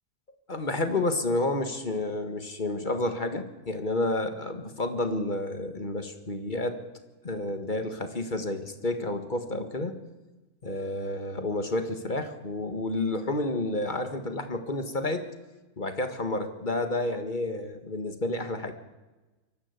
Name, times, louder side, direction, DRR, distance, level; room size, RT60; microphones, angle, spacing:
voice 1, 0.5-6.8 7.2-10.0 10.6-15.2 15.8-18.7, left 2 dB, 35° left, 8 dB, 1.8 m, -30 dB
23.0 x 14.0 x 8.3 m, 1.1 s
omnidirectional pair, 1.5 m